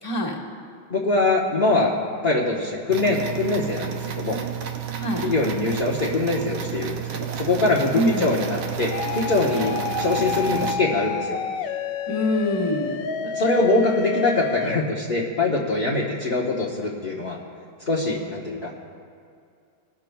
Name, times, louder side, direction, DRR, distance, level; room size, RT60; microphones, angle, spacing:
voice 1, 0.0-0.4 5.0-5.3 7.9-8.3 12.1-13.0, left 1 dB, 15° left, -3 dB, 1.5 m, -24 dB
voice 2, 0.9-1.9 2.2-4.4 5.2-11.4 13.2-17.4 17.9-18.7, left 2 dB, 35° left, -5 dB, 0.9 m, -23 dB
sound 1, 2.9-10.7, right 9 dB, 75° right, 1.5 m, -31 dB
sound 2, 8.9-14.8, left 7 dB, 70° left, 1.2 m, -29 dB
21.0 x 13.5 x 2.3 m, 2.4 s
omnidirectional pair, 2.2 m